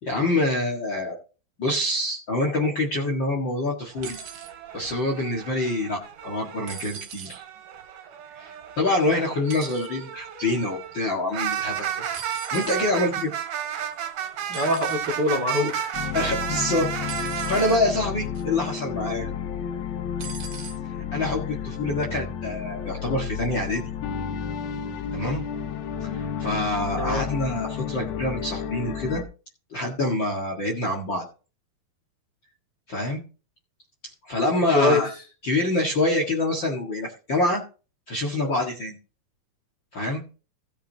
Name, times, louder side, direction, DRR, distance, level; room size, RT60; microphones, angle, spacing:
voice 1, 0.0-1.1 1.6-4.2 4.7-7.4 8.3-11.9 12.5-13.3 16.1-16.9 17.2-19.3 21.1-23.8 25.1-25.5 26.0-29.2 29.7-31.2 32.9-33.2 34.2-35.1 35.4-37.6 38.1-39.0 39.9-40.2, left 2 dB, 40° left, 1 dB, 1.8 m, -26 dB
sound 1, 3.9-6.8 7.3-17.8, right 9 dB, 75° right, 4.1 m, -33 dB
sound 2, 4.0-4.5 6.7-7.4 9.5-9.9 12.1-12.8 14.5-15.0 17.1-17.8 18.4-18.7 20.2-20.8 21.8-21.9, right 7 dB, 90° right, 3.4 m, -40 dB
voice 2, 14.5-16.0 27.0-27.2 34.7-35.0, left 2 dB, 35° right, 2 dB, 2.2 m, -24 dB
sound 3, 15.9-29.2, left 8 dB, 80° left, 2.9 m, -32 dB
17.0 x 8.3 x 2.8 m, 0.36 s
omnidirectional pair, 4.3 m